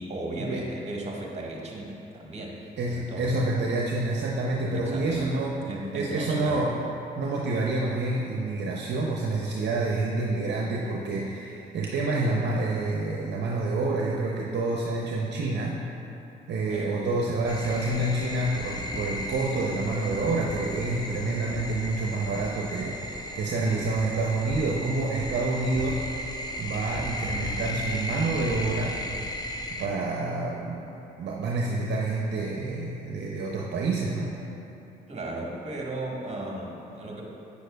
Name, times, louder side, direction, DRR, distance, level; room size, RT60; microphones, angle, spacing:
voice 1, 0.0-3.3 4.7-6.7 16.7-17.4 35.1-37.3, right 1 dB, 35° right, -2 dB, 1.3 m, -36 dB
voice 2, 2.8-5.5 5.9-6.8 7.2-15.8 16.5-26.1 26.6-29.0 29.7-30.9 31.2-34.4, right 2 dB, 60° right, -2 dB, 0.6 m, -28 dB
sound 1, 17.5-29.9, left 1 dB, 20° left, 0.6 m, -35 dB
8.2 x 6.3 x 2.3 m, 2.9 s
supercardioid pair, 55°, 20 cm